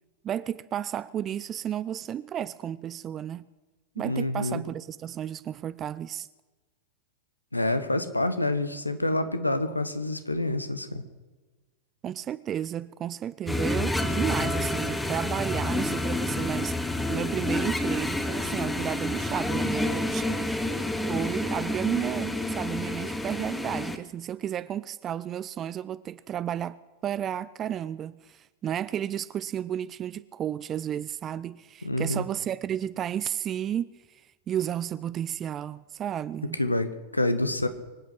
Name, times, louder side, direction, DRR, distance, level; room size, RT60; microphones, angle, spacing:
voice 1, 0.2-3.4 4.0-6.3 12.0-20.8 21.1-26.8 27.0-36.6, right 10 dB, 30° right, 0.4 m, -32 dB
voice 2, 4.0-4.6 7.5-11.0 31.8-32.2 36.6-37.7, left 1 dB, 85° left, 1.1 m, -27 dB
sound 1, 13.5-24.0, left 1 dB, 5° left, 1.1 m, -29 dB
24.5 x 8.7 x 6.2 m
figure-of-eight pair, 90°, 0 cm